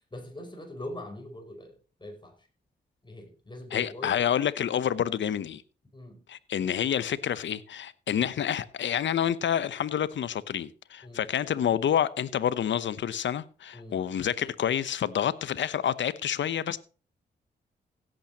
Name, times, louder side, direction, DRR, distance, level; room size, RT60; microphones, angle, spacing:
voice 1, 0.1-2.4 3.0-4.3 5.9-6.2 6.6-6.7 11.0-11.2 13.7-14.0, left 1 dB, 25° left, 5.5 m, -42 dB
voice 2, 3.7-5.6 6.3-16.8, left 9 dB, 70° left, 0.9 m, -28 dB
16.5 x 8.9 x 2.9 m
supercardioid pair, 45°, 20 cm